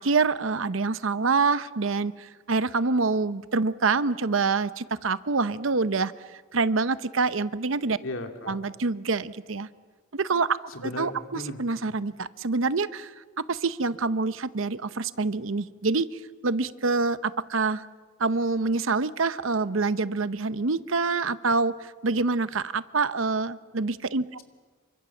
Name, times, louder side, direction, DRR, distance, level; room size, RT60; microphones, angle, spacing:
voice 1, 0.0-6.1 6.5-8.0 8.5-9.7 10.1-17.8 18.2-24.4, right 4 dB, 85° right, 14 dB, 0.8 m, -26 dB
voice 2, 8.0-8.6 10.7-11.6, left 2 dB, 85° left, 4 dB, 2.7 m, -35 dB
28.0 x 24.5 x 7.1 m, 1.4 s
head